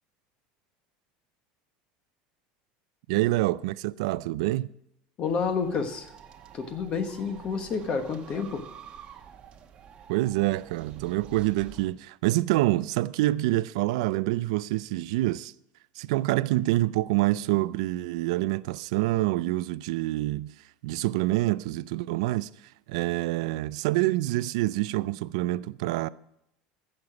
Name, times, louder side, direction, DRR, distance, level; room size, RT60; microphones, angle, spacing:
voice 1, 3.1-4.7 10.1-15.5 16.0-20.5 20.8-22.5 22.9-26.1, right 17 dB, 90° right, 0.4 m, -26 dB
voice 2, 5.2-6.1 6.5-8.6, left 5 dB, 30° left, 1.1 m, -29 dB
sound 1, 5.2-11.9, right 8 dB, 30° right, 1.0 m, -49 dB
15.5 x 6.8 x 4.9 m
cardioid pair, 165°, 3 cm